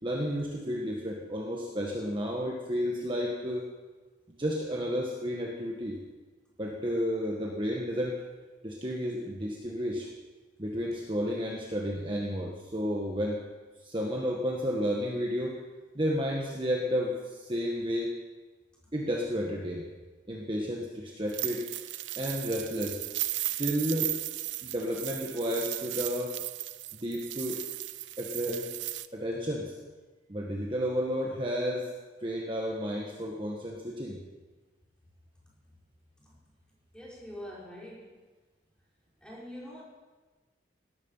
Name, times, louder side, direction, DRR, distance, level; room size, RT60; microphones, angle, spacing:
voice 1, 0.0-3.7 4.3-6.0 6.6-8.2 8.6-10.1 10.6-13.4 13.8-15.6 15.9-18.1 18.9-19.8 20.3-21.7 22.2-23.0 23.6-24.1 24.6-26.4 26.9-27.6 28.2-28.7 29.1-29.8 30.3-31.9 32.2-34.2, equal, 25° right, -1 dB, 1.6 m, -32 dB
sound 1, 21.3-29.1, right 16 dB, 75° right, 0.6 m, -36 dB
voice 2, 36.9-38.2 39.2-39.8, left 1 dB, 5° left, -6 dB, 5.0 m, -44 dB
18.0 x 13.0 x 5.7 m, 1.3 s
head